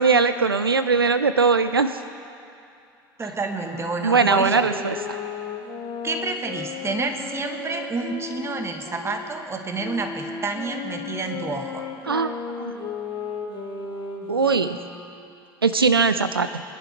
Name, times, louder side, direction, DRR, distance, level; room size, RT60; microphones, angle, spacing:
voice 1, 0.0-2.0 4.0-5.2 12.1-12.7 14.3-14.8 15.6-16.6, right 4 dB, 90° right, 11 dB, 0.4 m, -20 dB
voice 2, 3.2-4.7 6.0-11.9, right 3 dB, 20° right, 5 dB, 1.7 m, -29 dB
sound 1, 3.4-9.1 9.8-15.1, left 5 dB, 40° left, 2.4 m, -35 dB
22.5 x 11.0 x 4.5 m, 2.5 s
figure-of-eight pair, 65°, 12 cm